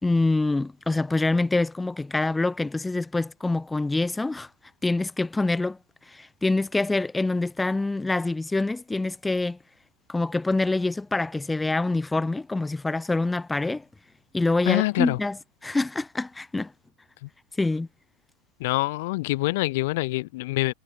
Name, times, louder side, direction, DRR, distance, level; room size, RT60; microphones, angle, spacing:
voice 1, 0.0-4.5 4.8-5.8 6.1-9.6 10.1-13.8 14.3-15.4 15.6-16.7 17.6-17.9, left 2 dB, 10° left, 3.2 m, -25 dB
voice 2, 14.6-15.2 17.2-17.3 18.6-20.7, left 21 dB, 50° left, 5.0 m, -25 dB
figure-of-eight pair, 90°, 0 cm